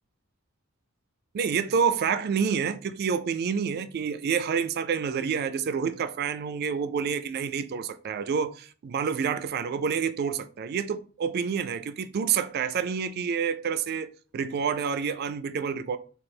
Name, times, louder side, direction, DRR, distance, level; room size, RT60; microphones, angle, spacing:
voice 1, 1.3-16.0, right 6 dB, 45° right, 0.3 m, -28 dB
3.2 x 2.3 x 4.3 m
head